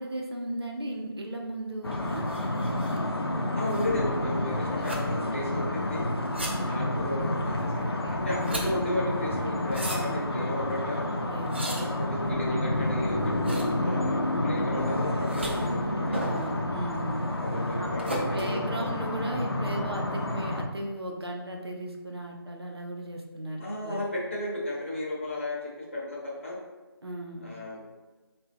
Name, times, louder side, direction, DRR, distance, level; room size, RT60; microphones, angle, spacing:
voice 1, 0.0-2.3 6.4-7.0 7.8-8.2 9.8-10.2 11.2-12.0 16.2-17.3 17.8-17.9 18.3-24.0 27.0-27.5, right 1 dB, 80° right, 0 dB, 0.8 m, -36 dB
sound 1, 1.8-20.6, left 1 dB, 75° left, 0.6 m, -29 dB
sound 2, 1.9-19.5, right 1 dB, 25° right, 0.5 m, -39 dB
voice 2, 3.6-6.0 6.7-11.1 11.6-16.2 17.4-18.9 23.6-26.6 27.4-27.8, left 1 dB, 30° left, -5 dB, 0.8 m, -34 dB
3.1 x 2.5 x 3.7 m, 1.2 s
figure-of-eight pair, 160°, 13 cm